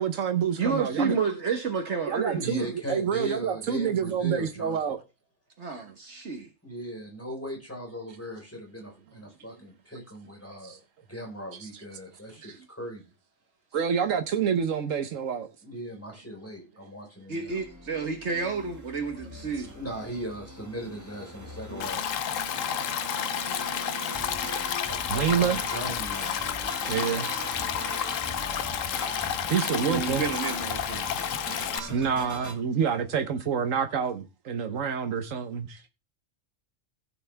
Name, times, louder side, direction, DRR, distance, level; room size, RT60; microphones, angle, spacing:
voice 1, 0.0-1.1 2.1-5.0 5.7-5.8 10.6-10.8 11.6-11.7 12.4-12.5 13.7-15.5 25.1-25.6 26.9-27.3 29.5-30.3 31.8-35.8, right 7 dB, 90° right, 1.4 m, -27 dB
voice 2, 0.6-2.7 5.6-6.5 17.3-19.7 21.7-21.9 22.5-22.7 29.6-31.0, right 5 dB, 60° right, 1.6 m, -31 dB
voice 3, 2.3-4.8 6.6-10.8 11.1-13.0 15.6-17.6 19.7-22.0 24.9-26.4, equal, 10° left, 4.6 m, -38 dB
sound 1, 17.5-32.6, right 1 dB, 15° right, 1.7 m, -40 dB
Stream, 21.8-31.8, left 9 dB, 85° left, 1.1 m, -31 dB
16.0 x 6.9 x 3.4 m
omnidirectional pair, 1.3 m